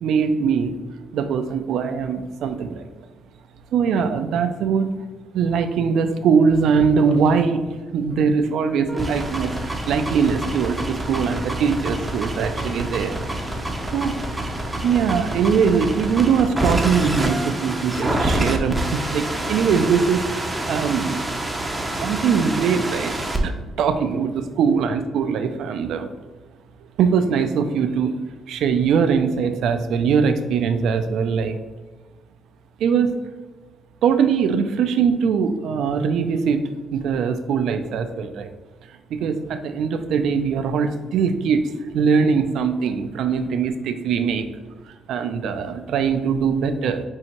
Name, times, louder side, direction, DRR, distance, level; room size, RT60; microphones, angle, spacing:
voice 1, 0.0-0.8 1.1-2.9 3.7-5.0 5.3-7.6 7.9-13.2 13.6-13.7 13.9-14.2 14.8-21.2 22.0-23.1 23.4-26.1 27.0-28.1 28.5-31.6 32.8-33.1 34.0-38.5 38.9-44.5 45.1-47.0, right 6 dB, 75° right, 8 dB, 0.3 m, -21 dB
sound 1, 8.9-23.4, right 1 dB, 10° right, 0.6 m, -27 dB
5.3 x 2.7 x 2.9 m, 1.2 s
cardioid pair, 90°, 0 cm